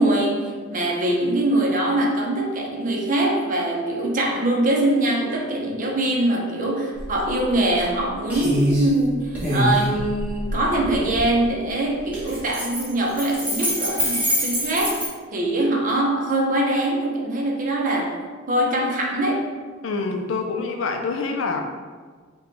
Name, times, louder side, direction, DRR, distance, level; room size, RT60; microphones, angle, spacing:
voice 1, 0.0-15.1 15.3-18.2 18.5-19.4, right 1 dB, 40° right, -1 dB, 0.6 m, -23 dB
sound 1, 6.9-7.1 7.5-8.0 8.3-8.9 9.3-11.3 12.1-15.1, equal, 10° right, 1.0 m, -24 dB
voice 2, 19.8-21.6, left 4 dB, 70° left, 4 dB, 0.4 m, -26 dB
4.9 x 2.3 x 3.1 m, 1.5 s
head